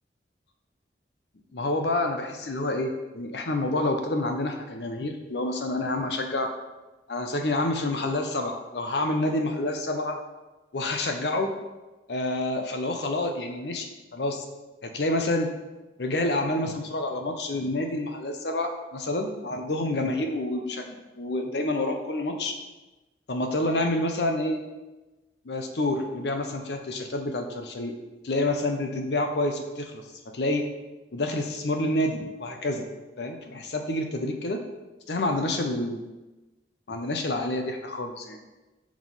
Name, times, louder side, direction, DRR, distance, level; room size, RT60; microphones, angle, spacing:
voice 1, 1.5-6.5 7.1-10.2 10.7-11.5 12.1-14.4 14.8-15.5 16.0-22.6 23.3-24.6 25.4-27.9 28.2-30.0 30.3-30.7 31.1-32.9 33.2-34.6 35.1-36.0 36.9-38.4, left 2 dB, 70° left, 5 dB, 0.7 m, -28 dB
5.0 x 3.8 x 5.4 m, 1.1 s
head